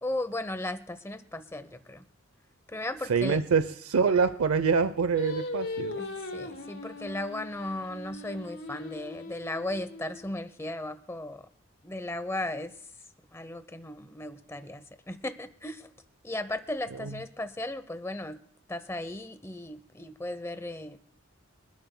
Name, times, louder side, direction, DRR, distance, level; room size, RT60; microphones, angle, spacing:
voice 1, 0.0-2.0 2.7-3.4 6.0-11.5 11.8-12.7 13.3-15.9 16.2-18.4 18.7-21.0, left 1 dB, 10° left, 11 dB, 0.7 m, -36 dB
voice 2, 3.1-6.0 17.0-17.1, right 5 dB, 90° right, 12 dB, 0.6 m, -25 dB
Singing, 5.1-10.4, left 2 dB, 70° left, 3.9 m, -39 dB
27.5 x 11.5 x 2.2 m, 0.65 s
head